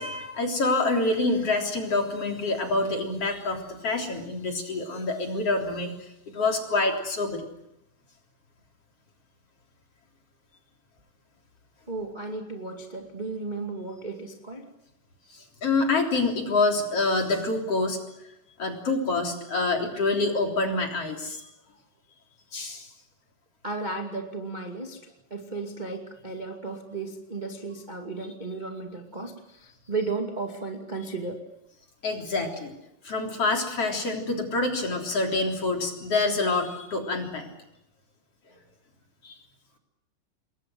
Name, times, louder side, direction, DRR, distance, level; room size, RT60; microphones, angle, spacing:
voice 1, 0.0-5.9 6.3-7.5 15.3-18.0 18.6-21.4 22.5-22.9 32.0-32.7 33.0-37.5 39.2-39.3, left 3 dB, 35° left, 2 dB, 4.1 m, -26 dB
voice 2, 11.9-14.7 23.6-31.4, right 3 dB, 25° right, 2 dB, 0.9 m, -34 dB
29.0 x 21.5 x 7.9 m, 0.84 s
omnidirectional pair, 5.2 m